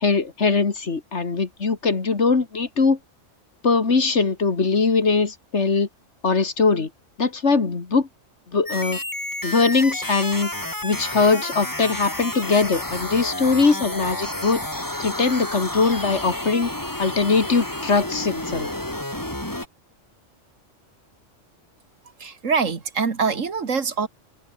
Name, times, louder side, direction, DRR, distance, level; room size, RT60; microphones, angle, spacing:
voice 1, 0.0-3.0 3.6-5.9 6.2-6.9 7.2-8.1 8.5-9.0 9.4-10.5 10.8-14.6 15.0-16.7 17.0-18.7, left 4 dB, 65° left, 2.4 m, -21 dB
sound 1, 8.7-19.7, left 1 dB, 15° left, 2.9 m, -30 dB
voice 2, 22.2-24.1, right 5 dB, 80° right, 2.2 m, -24 dB
open air
omnidirectional pair, 1.3 m